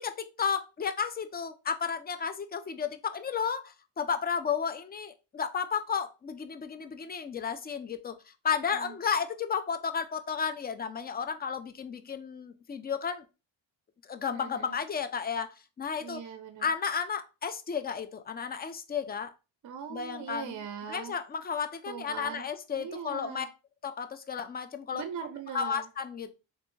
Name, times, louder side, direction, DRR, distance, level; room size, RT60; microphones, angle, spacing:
voice 1, 0.0-13.2 14.0-16.2 16.6-19.3 19.9-20.6 20.9-23.5 23.8-25.0 25.5-26.3, left 6 dB, 25° left, 0.3 m, -33 dB
voice 2, 14.3-14.8 16.0-16.7 19.6-21.2 21.9-23.5 24.9-25.9, right 7 dB, 45° right, 0.5 m, -41 dB
3.2 x 2.6 x 3.0 m
cardioid pair, 95°, 44 cm